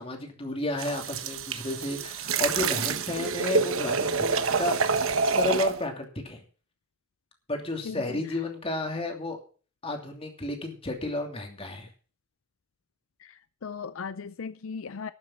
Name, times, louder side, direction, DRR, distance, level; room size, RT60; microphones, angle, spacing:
voice 1, 0.0-6.4 7.5-9.4 9.8-11.9, left 2 dB, 25° left, 2.8 m, -32 dB
sound 1, 0.8-5.8, right 5 dB, 75° right, 1.1 m, -27 dB
voice 2, 7.8-8.2 13.2-15.1, left 5 dB, 75° left, 0.5 m, -38 dB
13.0 x 7.3 x 7.3 m
head